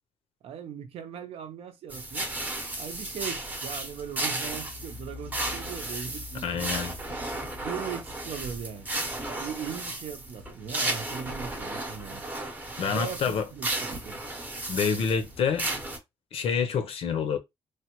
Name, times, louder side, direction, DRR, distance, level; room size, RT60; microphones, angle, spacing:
voice 1, 0.4-2.3 2.8-6.7 7.5-8.9 9.3-12.2 12.8-14.2, right 8 dB, 70° right, 0.6 m, -39 dB
sound 1, 1.9-16.0, right 2 dB, 15° right, 0.7 m, -34 dB
voice 2, 6.4-6.9 12.8-13.5 14.7-15.7 16.3-17.4, left 6 dB, 70° left, 0.6 m, -27 dB
3.2 x 2.1 x 2.9 m
cardioid pair, 140°, 10 cm